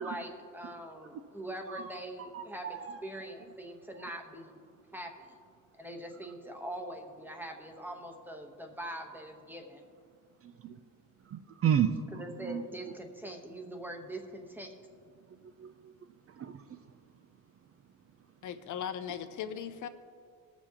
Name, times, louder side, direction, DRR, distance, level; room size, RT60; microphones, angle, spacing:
voice 1, 0.0-4.6 4.9-5.4 5.8-9.8 12.1-14.7, right 1 dB, 5° right, 3 dB, 1.0 m, -43 dB
voice 2, 2.3-3.0 10.4-10.7 11.3-11.9 12.4-12.6 15.6-15.9 16.4-16.6, right 9 dB, 40° right, 9 dB, 0.5 m, -32 dB
voice 3, 18.4-19.9, left 9 dB, 60° left, 10 dB, 0.6 m, -38 dB
20.5 x 7.0 x 2.9 m, 2.1 s
cardioid pair, 120°, 35 cm